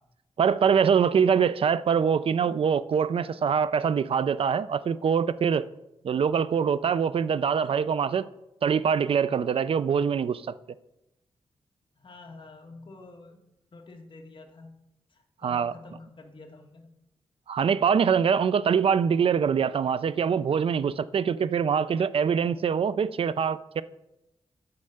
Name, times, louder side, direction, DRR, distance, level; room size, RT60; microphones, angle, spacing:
voice 1, 0.4-5.7 6.0-8.3 8.6-10.4 15.4-15.7 17.5-23.8, right 7 dB, 60° right, 0.4 m, -24 dB
voice 2, 12.0-13.4 13.7-14.7 15.1-16.9, left 3 dB, 50° left, 1.7 m, -48 dB
9.6 x 5.6 x 6.5 m
wide cardioid pair, 120°, 11 cm